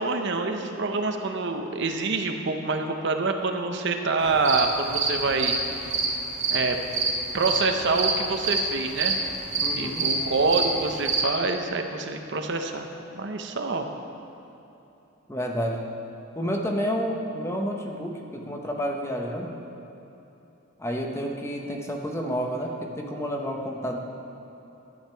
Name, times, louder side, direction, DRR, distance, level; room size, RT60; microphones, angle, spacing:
voice 1, 0.0-5.6 5.8-5.9 6.5-6.8 7.3-9.2 9.8-13.9, right 3 dB, 55° right, 5 dB, 0.7 m, -26 dB
sound 1, 4.2-11.2, right 3 dB, 35° right, 1.4 m, -27 dB
voice 2, 9.6-10.1 15.3-15.9 16.3-19.5 20.8-24.0, equal, 15° left, 1 dB, 0.8 m, -30 dB
12.0 x 8.8 x 4.5 m, 3.0 s
head